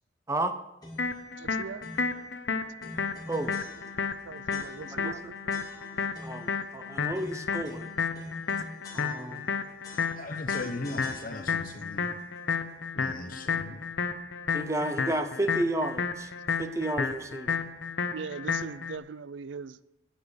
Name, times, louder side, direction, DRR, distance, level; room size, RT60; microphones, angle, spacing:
sound 1, 0.8-1.2 1.8-2.2 2.8-4.2 4.5-5.1 5.5-6.6 7.1-9.5 9.8-11.7, left 1 dB, 20° left, 2.6 m, -46 dB
sound 2, 1.0-19.0, left 5 dB, 75° left, 0.9 m, -32 dB
voice 1, 1.4-1.8 4.3-5.7 18.1-19.8, right 5 dB, 80° right, 17 dB, 0.5 m, -40 dB
voice 2, 6.2-7.9 8.9-9.4 14.5-16.3 16.6-17.6, right 1 dB, 15° right, 8 dB, 0.7 m, -32 dB
voice 3, 10.2-12.1 12.9-13.8, left 2 dB, 45° left, 7 dB, 1.2 m, -38 dB
9.8 x 8.4 x 6.4 m, 0.90 s
head